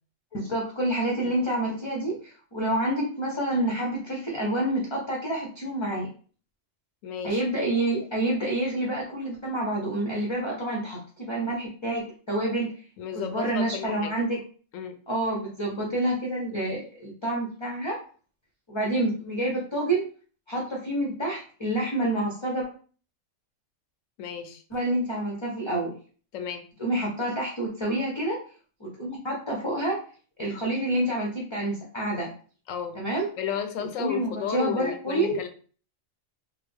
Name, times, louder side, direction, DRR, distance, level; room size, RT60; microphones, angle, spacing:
voice 1, 0.3-6.1 7.2-12.7 13.1-14.4 15.1-18.0 18.7-20.0 20.5-22.7 24.7-25.9 26.8-28.4 28.8-30.0 30.4-32.3 32.9-33.3 34.0-35.4, right 1 dB, 30° left, -2 dB, 0.5 m, -28 dB
voice 2, 7.0-7.4 13.0-14.1 14.7-15.0 24.2-24.6 26.3-26.7 32.7-33.0 33.4-35.5, left 8 dB, 80° left, 7 dB, 0.9 m, -33 dB
3.6 x 2.0 x 3.3 m, 0.41 s
omnidirectional pair, 1.4 m